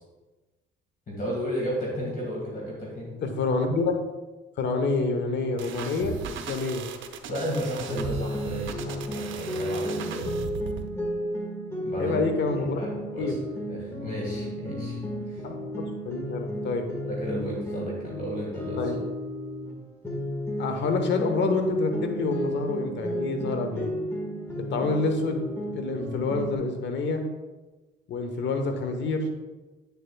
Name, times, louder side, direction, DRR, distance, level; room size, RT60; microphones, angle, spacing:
voice 1, 1.1-3.1 7.3-10.5 11.8-12.2 12.6-13.4 13.7-15.0 15.3-15.4 17.1-18.8, equal, 45° left, -3 dB, 1.9 m, -33 dB
voice 2, 3.2-4.0 4.6-6.2 6.5-6.8 12.0-12.8 13.2-13.4 15.4-15.6 16.0-16.8 18.8-19.0 20.6-23.9 24.6-25.4 25.7-27.2 28.1-29.3, left 3 dB, 65° left, 5 dB, 1.1 m, -27 dB
sound 1, 5.6-10.9, right 7 dB, 80° right, 0.7 m, -37 dB
sound 2, 7.9-19.7 20.0-26.6, equal, 15° left, 1.6 m, -33 dB
8.4 x 6.9 x 2.3 m, 1.2 s
cardioid pair, 90°, 20 cm